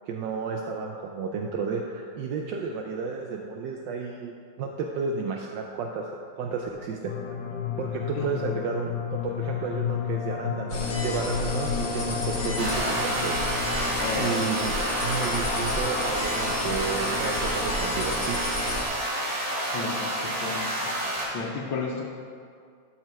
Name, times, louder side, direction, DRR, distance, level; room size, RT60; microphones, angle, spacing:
voice 1, 0.1-4.3 4.6-7.1 7.8-13.4 14.2-18.5, right 5 dB, 75° right, 1 dB, 1.2 m, -32 dB
sound 1, 7.1-17.0, left 7 dB, 70° left, 1.3 m, -33 dB
voice 2, 8.2-8.5 14.0-14.4 19.7-20.9 21.3-22.0, left 5 dB, 90° left, -3 dB, 1.6 m, -33 dB
sound 2, 10.7-18.8, left 1 dB, 45° left, 1.0 m, -32 dB
sound 3, 12.6-21.2, right 1 dB, 40° right, 2.1 m, -29 dB
12.5 x 4.4 x 4.6 m, 2.2 s
omnidirectional pair, 2.1 m